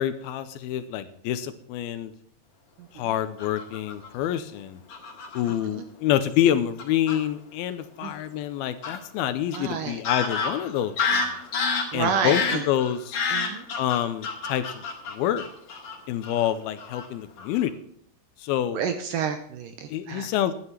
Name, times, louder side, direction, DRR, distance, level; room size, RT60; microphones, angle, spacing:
voice 1, 0.0-2.1 2.9-4.8 5.3-11.3 11.9-12.4 12.7-13.2 13.8-14.8 15.1-15.5 16.1-17.7 18.4-18.8 19.9-20.5, left 11 dB, 80° left, 12 dB, 2.5 m, -27 dB
voice 2, 2.8-3.1 5.4-5.9 8.0-8.1 9.6-10.0 11.7-12.6 13.3-13.6 18.7-20.3, right 6 dB, 75° right, 7 dB, 2.1 m, -30 dB
Fowl / Bird vocalization bird call bird song, 3.4-4.1 4.9-5.5 6.4-6.5 6.8-7.2 8.8-9.0 9.5-9.6 10.0-16.0 16.2-16.5 16.8-17.1 17.4-17.6, left 4 dB, 50° left, 2.9 m, -29 dB
11.5 x 9.7 x 5.7 m, 0.65 s
omnidirectional pair, 4.6 m